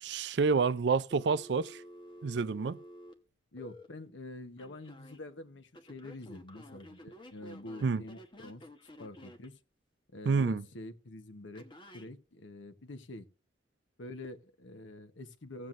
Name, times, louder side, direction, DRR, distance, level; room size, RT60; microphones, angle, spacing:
voice 1, 0.0-1.8 2.2-2.8 7.8-8.0 10.3-10.6, right 5 dB, 65° right, 0.4 m, -28 dB
Telephone, 1.1-3.9 4.6-5.2 5.7-9.5 11.6-12.1, equal, 25° left, 1.0 m, -52 dB
voice 2, 3.5-9.6 10.1-11.7 11.9-13.3 14.0-15.7, left 2 dB, 85° left, 0.9 m, -46 dB
16.5 x 7.5 x 2.5 m
head